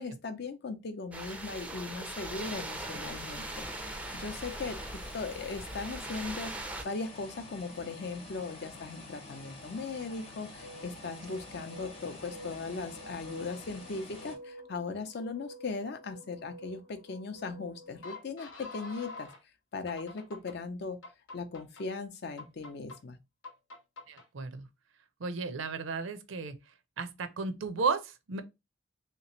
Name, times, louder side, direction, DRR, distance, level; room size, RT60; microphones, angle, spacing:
voice 1, 0.0-3.7 4.1-19.3 19.7-21.0 21.3-23.2, left 4 dB, 55° left, 0.5 m, -38 dB
sound 1, 1.1-6.8, right 2 dB, 5° right, 0.4 m, -40 dB
sound 2, 2.3-14.4, left 2 dB, 30° left, 0.8 m, -48 dB
sound 3, 10.5-19.4 19.9-20.6 21.0-21.8 22.4-23.0 23.4-24.3, left 2 dB, 85° left, 1.0 m, -49 dB
voice 2, 24.1-24.7 25.2-26.6 27.0-28.4, right 4 dB, 85° right, 0.6 m, -34 dB
3.2 x 2.9 x 2.9 m
head